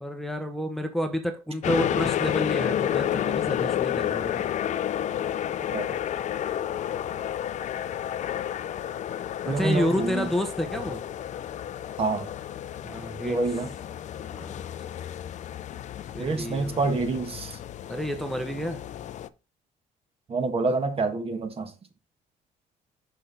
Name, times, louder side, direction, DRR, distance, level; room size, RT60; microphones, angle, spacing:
voice 1, 0.0-4.5 9.4-11.0 12.8-13.4 14.3-14.6 16.1-16.8 17.9-18.8, equal, ahead, 0.8 m, -30 dB
sound 1, 1.6-19.3, left 10 dB, 45° left, 0.4 m, -31 dB
voice 2, 9.5-10.3 12.0-12.3 13.2-13.7 16.2-17.6 20.3-21.7, right 3 dB, 35° right, 1.2 m, -27 dB
6.0 x 5.7 x 3.4 m
cardioid pair, 110°, 17 cm